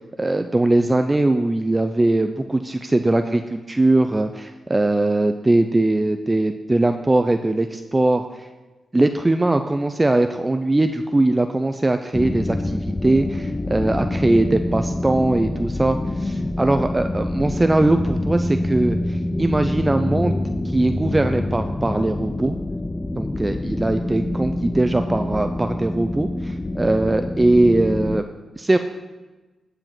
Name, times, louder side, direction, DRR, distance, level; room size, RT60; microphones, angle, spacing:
voice 1, 0.2-8.2 8.9-20.4 20.6-22.6 23.2-28.2 28.6-28.8, right 2 dB, 25° right, 7 dB, 0.5 m, -20 dB
sound 1, 12.1-28.2, left 1 dB, 25° left, 0.5 m, -26 dB
13.0 x 4.9 x 6.0 m, 1.2 s
cardioid pair, 60°, 0 cm